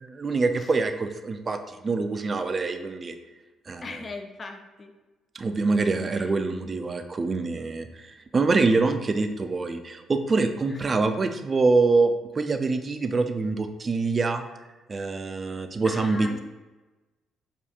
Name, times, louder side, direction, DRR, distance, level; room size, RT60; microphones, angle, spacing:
voice 1, 0.0-3.2 3.7-3.8 5.3-14.4 14.9-16.3, right 3 dB, 35° right, 8 dB, 0.3 m, -25 dB
voice 2, 3.8-4.9 6.1-6.4 10.7-10.9 15.4-16.4, left 3 dB, 40° left, 5 dB, 0.5 m, -40 dB
4.6 x 2.4 x 2.8 m, 1.2 s
hypercardioid pair, 45°, 0 cm